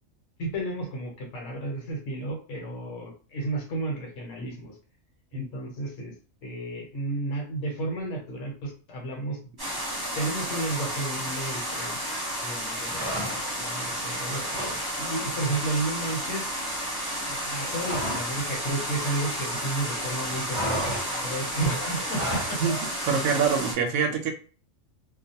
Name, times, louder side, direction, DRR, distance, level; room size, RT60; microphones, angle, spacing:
voice 1, 0.4-4.7 5.3-6.1 6.4-9.4 10.2-13.3 13.6-16.5 17.2-22.6, right 2 dB, 70° left, 1 dB, 1.2 m, -32 dB
sound 1, 9.6-23.7, equal, 20° right, 1.0 m, -32 dB
sound 2, 12.9-13.7 14.0-14.9 15.1-15.3 15.6-18.4 18.7-19.8 20.0-22.6, equal, 35° right, 0.6 m, -34 dB
voice 2, 23.0-24.3, right 6 dB, 75° right, 2 dB, 0.9 m, -24 dB
2.4 x 2.3 x 2.7 m, 0.38 s
omnidirectional pair, 1.4 m